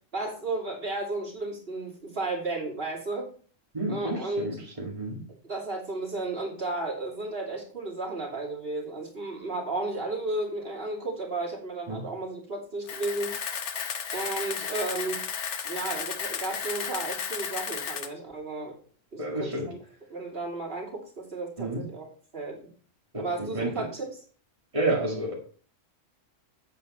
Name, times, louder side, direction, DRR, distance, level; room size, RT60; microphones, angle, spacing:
voice 1, 0.1-3.3 3.9-4.5 5.4-13.4 14.1-15.2 15.6-18.7 19.1-19.8 20.1-22.1 22.3-22.6 23.2-24.1, right 2 dB, 50° right, -1 dB, 2.8 m, -33 dB
voice 2, 3.7-5.2 11.9-12.0 19.2-19.7 21.6-21.8 23.1-23.9 24.7-25.3, right 2 dB, 25° right, -2 dB, 2.0 m, -30 dB
Camera, 12.9-18.1, left 7 dB, 65° left, 1.1 m, -34 dB
8.4 x 7.8 x 4.2 m, 0.43 s
omnidirectional pair, 1.3 m